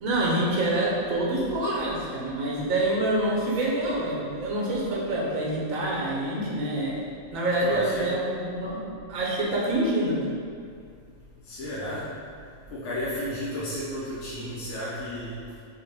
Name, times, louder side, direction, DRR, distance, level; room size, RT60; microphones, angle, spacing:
voice 1, 0.0-7.0 7.3-8.8 9.1-10.2, right 1 dB, 80° right, -3 dB, 1.1 m, -26 dB
voice 2, 7.6-8.1 11.5-12.0 12.7-15.4, equal, 85° left, -9 dB, 1.1 m, -33 dB
3.6 x 2.3 x 3.3 m, 2.2 s
omnidirectional pair, 1.4 m